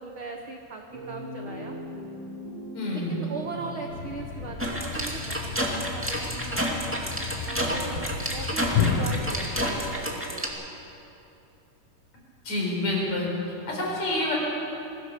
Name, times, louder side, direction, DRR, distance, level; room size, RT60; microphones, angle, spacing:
voice 1, 0.0-1.8 2.9-5.6 5.9-7.0 7.5-10.7, right 4 dB, 60° right, 2 dB, 1.4 m, -39 dB
sound 1, 0.9-4.6, left 1 dB, 40° right, 5.2 m, -40 dB
voice 2, 2.7-3.2 12.4-13.3 13.7-14.3, left 1 dB, 55° left, -2 dB, 5.8 m, -28 dB
Thump thud, 3.9-10.1, left 6 dB, 85° left, 3.0 m, -32 dB
sound 2, 4.6-10.5, equal, 5° right, 1.4 m, -30 dB
23.0 x 16.5 x 6.8 m, 2.9 s
omnidirectional pair, 3.9 m